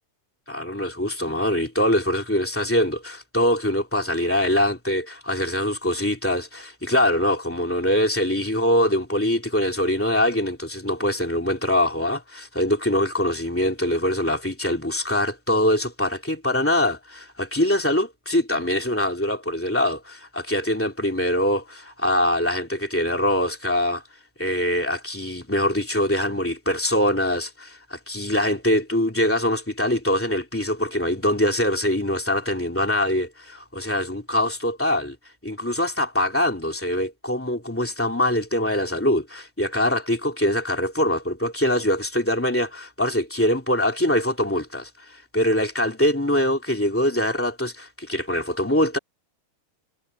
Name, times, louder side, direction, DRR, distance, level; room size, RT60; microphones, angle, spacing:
voice 1, 0.5-24.0 24.4-35.1 35.4-49.0, left 1 dB, 5° left, 1.3 m, -23 dB
omnidirectional pair, 5.2 m